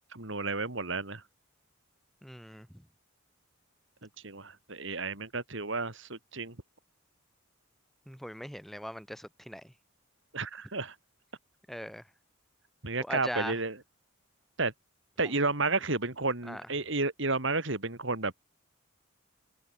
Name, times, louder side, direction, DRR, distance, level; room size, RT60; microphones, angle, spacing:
voice 1, 0.1-1.2 4.2-6.6 10.3-10.9 12.8-13.8 14.6-14.7 15.2-18.3, right 3 dB, 60° right, 3.1 m, -31 dB
voice 2, 2.2-2.7 8.1-9.7 11.7-12.0 13.0-13.6 15.2-15.3 16.4-16.6, equal, ahead, 2.8 m, -40 dB
head